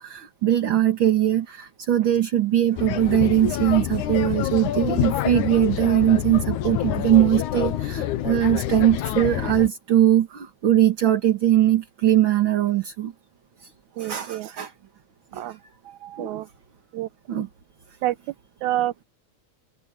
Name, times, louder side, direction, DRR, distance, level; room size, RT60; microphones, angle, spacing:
voice 1, 0.0-13.1 13.6-13.7 14.0-14.7 15.3-15.5 15.9-16.4 17.3-17.5, right 12 dB, 45° right, 2.2 m, -21 dB
sound 1, 2.8-9.7, left 12 dB, 85° left, 2.5 m, -27 dB
voice 2, 14.0-14.5 15.3-15.6 16.2-16.5 16.9-17.1 18.0-18.2 18.6-19.0, right 14 dB, 90° right, 2.2 m, -27 dB
omnidirectional pair, 3.3 m